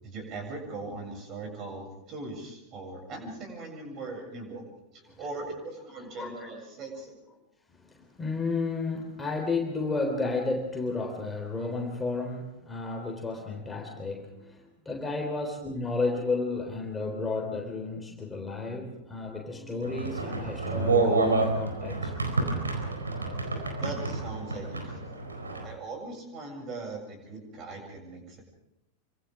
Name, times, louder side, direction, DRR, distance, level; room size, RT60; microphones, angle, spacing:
voice 1, 0.0-7.3 23.8-25.0 25.6-28.4, right 3 dB, 35° right, 3 dB, 7.7 m, -40 dB
voice 2, 6.2-6.5 7.9-22.1 24.4-24.5, left 3 dB, 10° left, 1 dB, 3.6 m, -32 dB
sound 1, 19.8-25.7, right 3 dB, 75° right, 4.4 m, -29 dB
27.5 x 25.5 x 3.7 m, 0.84 s
figure-of-eight pair, 90°, 0 cm